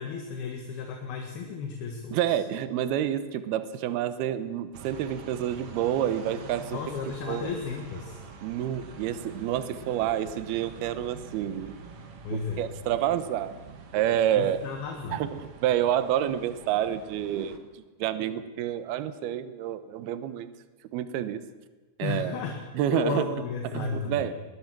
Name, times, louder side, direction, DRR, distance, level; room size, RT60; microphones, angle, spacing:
voice 1, 0.0-2.4 6.7-8.2 12.2-12.6 14.4-15.2 22.0-22.6 22.9-24.5, left 5 dB, 75° left, 2 dB, 3.7 m, -34 dB
voice 2, 2.1-6.8 7.3-7.5 8.4-11.8 12.3-13.6 13.9-14.6 15.1-20.5 20.9-21.4 22.0-22.4 22.7-23.3 23.6-24.5, right 11 dB, 80° right, 12 dB, 2.9 m, -28 dB
sound 1, 4.7-17.6, right 4 dB, 45° right, 2.2 m, -46 dB
21.0 x 20.5 x 6.1 m, 1.3 s
omnidirectional pair, 4.5 m